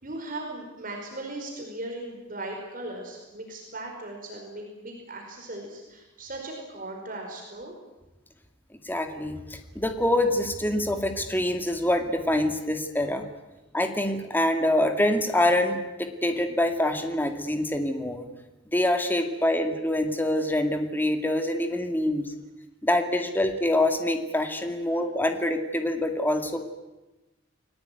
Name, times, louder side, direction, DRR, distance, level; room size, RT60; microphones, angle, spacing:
voice 1, 0.0-7.7, right 2 dB, 45° right, 1 dB, 5.1 m, -38 dB
voice 2, 8.8-13.3 13.7-18.3 18.7-22.3 22.8-26.6, left 1 dB, 10° left, 6 dB, 2.3 m, -25 dB
30.0 x 21.0 x 9.3 m, 1.0 s
head